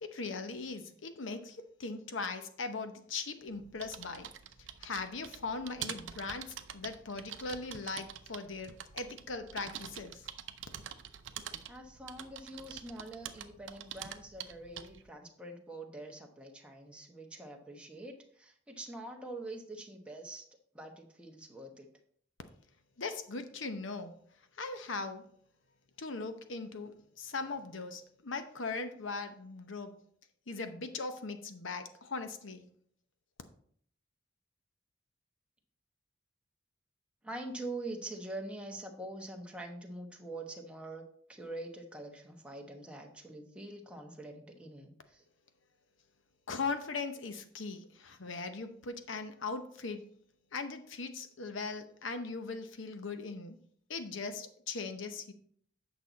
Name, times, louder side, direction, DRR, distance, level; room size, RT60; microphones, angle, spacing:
voice 1, 0.0-4.3 4.8-10.3 23.0-24.1 24.6-25.3 26.0-30.0 30.5-32.7 46.5-50.1 50.5-53.6 53.9-55.3, left 4 dB, 75° left, 8 dB, 0.8 m, -39 dB
sound 1, 3.5-15.1, right 9 dB, 65° right, 0.6 m, -46 dB
voice 2, 11.7-20.4 20.7-21.9 37.2-45.2, right 2 dB, 5° right, 1 dB, 1.0 m, -45 dB
8.6 x 6.1 x 4.0 m, 0.62 s
head